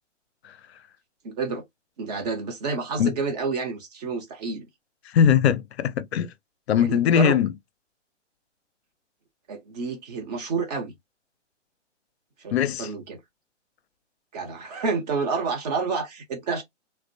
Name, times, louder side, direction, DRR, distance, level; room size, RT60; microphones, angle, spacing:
voice 1, 1.2-1.6 2.0-4.7 6.8-7.5 9.5-10.9 12.4-13.2 14.3-16.6, right 4 dB, 35° right, 0.7 m, -29 dB
voice 2, 5.1-6.3 6.7-7.5 12.5-12.9, left 8 dB, 60° left, 0.5 m, -20 dB
2.4 x 2.1 x 2.5 m
hypercardioid pair, 140°, 37 cm